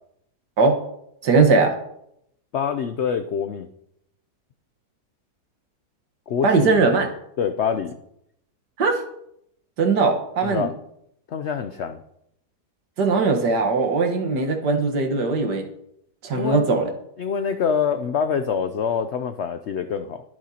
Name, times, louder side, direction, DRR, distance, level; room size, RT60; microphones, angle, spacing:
voice 1, 1.2-1.7 6.4-7.1 8.8-9.0 9.8-10.7 13.0-15.7 16.2-16.9, right 4 dB, 75° right, 4 dB, 2.0 m, -19 dB
voice 2, 2.5-3.7 6.3-7.1 7.4-8.0 10.4-10.7 11.3-12.0 16.3-16.7 17.2-20.2, left 7 dB, 75° left, 9 dB, 0.6 m, -25 dB
22.0 x 7.8 x 2.8 m, 0.78 s
omnidirectional pair, 1.8 m